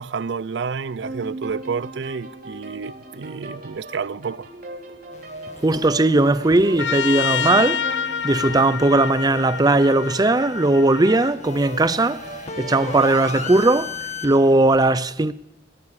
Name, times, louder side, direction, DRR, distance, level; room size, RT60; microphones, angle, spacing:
voice 1, 0.0-4.5, right 5 dB, 75° right, 0.5 m, -30 dB
sound 1, 1.0-13.8, right 2 dB, 50° right, 4.0 m, -38 dB
sound 2, 5.1-14.8, left 4 dB, 40° left, 1.9 m, -37 dB
voice 2, 5.6-12.2 12.6-13.9 14.2-15.3, right 2 dB, 20° right, 0.6 m, -18 dB
Trumpet, 6.8-11.3, left 7 dB, 75° left, 0.6 m, -27 dB
18.0 x 14.5 x 4.9 m
head